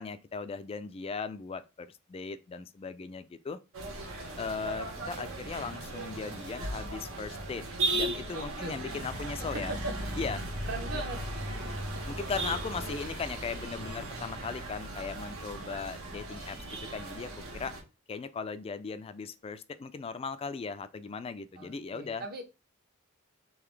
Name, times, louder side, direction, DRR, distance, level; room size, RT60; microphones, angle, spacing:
voice 1, 0.0-3.6 4.4-7.6 7.9-9.7 10.2-10.4 10.9-11.0 12.1-17.7 18.1-22.2, left 5 dB, 25° left, 0.3 m, -38 dB
sound 1, 3.7-17.8, right 2 dB, 80° right, 1.1 m, -37 dB
voice 2, 8.3-8.8 9.5-9.9 10.6-11.2 21.6-22.4, right 2 dB, 45° right, 0.8 m, -39 dB
3.9 x 2.9 x 3.2 m
head